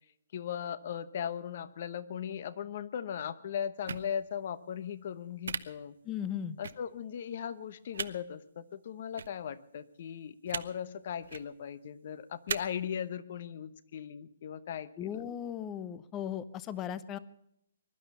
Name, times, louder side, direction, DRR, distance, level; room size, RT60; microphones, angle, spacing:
voice 1, 0.3-5.9 6.6-15.1, left 8 dB, 40° left, 17 dB, 0.9 m, -38 dB
sound 1, 3.9-4.0 5.4-5.6 6.6-6.7 7.9-8.1 9.1-9.3 10.5-10.6 11.2-11.4 12.5-12.6, right 6 dB, 65° right, 0.9 m, -35 dB
voice 2, 6.0-6.6 15.0-17.2, left 9 dB, 15° left, 17 dB, 0.6 m, -37 dB
21.5 x 11.5 x 5.6 m, 0.73 s
hypercardioid pair, 175°, 0 cm